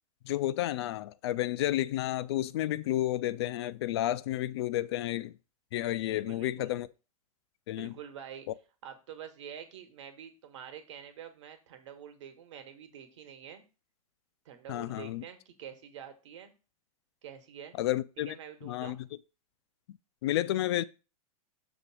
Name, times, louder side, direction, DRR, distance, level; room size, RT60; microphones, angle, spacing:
voice 1, 0.2-5.3 5.7-6.9 7.7-7.9 14.7-15.2 17.8-18.3 18.6-19.1 20.2-20.8, left 14 dB, 45° left, 0.4 m, -31 dB
voice 2, 6.1-6.8 7.7-8.5 8.8-13.6 14.4-16.5 17.2-17.8 18.2-19.0, right 9 dB, 55° right, 1.2 m, -47 dB
7.0 x 3.0 x 6.0 m
figure-of-eight pair, 100°, 19 cm